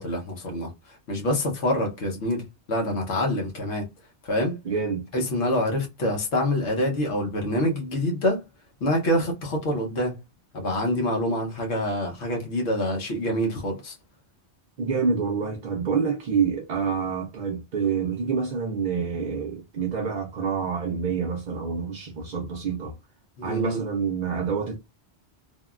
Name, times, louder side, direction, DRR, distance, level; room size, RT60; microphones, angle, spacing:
voice 1, 0.0-3.9 4.2-4.6 5.1-8.4 8.8-10.2 10.5-14.0 23.4-23.8, left 1 dB, 80° left, 1.2 m, -26 dB
voice 2, 4.7-5.1 14.8-22.9 23.4-24.8, right 5 dB, 55° right, 0.5 m, -27 dB
3.4 x 2.2 x 2.3 m
omnidirectional pair, 1.1 m